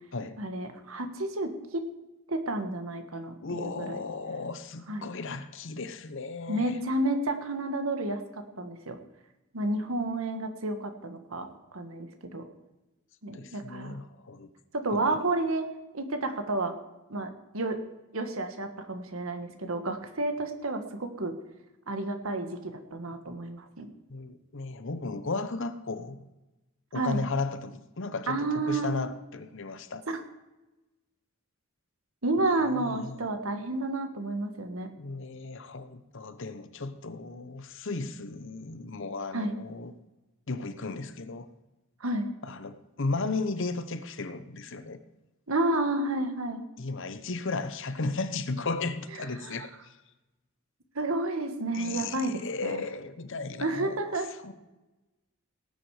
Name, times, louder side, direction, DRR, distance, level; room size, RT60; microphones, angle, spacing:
voice 1, 0.4-1.9 2.3-4.0 4.9-5.1 6.5-9.0 9.5-11.5 11.7-12.4 13.2-14.0 14.7-15.7 15.9-16.7 17.1-17.8 18.1-21.3 21.9-23.9 26.9-27.2 28.3-28.9 30.1-30.2 32.2-34.9 39.3-39.5 42.0-42.3 45.5-46.6 49.4-49.7 50.9-52.8 53.6-54.3, right 2 dB, 75° right, 7 dB, 1.6 m, -31 dB
voice 2, 3.4-6.7 13.3-14.5 14.9-15.2 24.1-26.3 26.9-30.0 32.7-33.2 35.0-39.9 40.5-41.5 42.4-45.0 46.8-50.0 51.7-54.0 54.4-54.5, left 3 dB, 60° left, 12 dB, 0.9 m, -35 dB
18.0 x 9.1 x 4.9 m, 1.0 s
head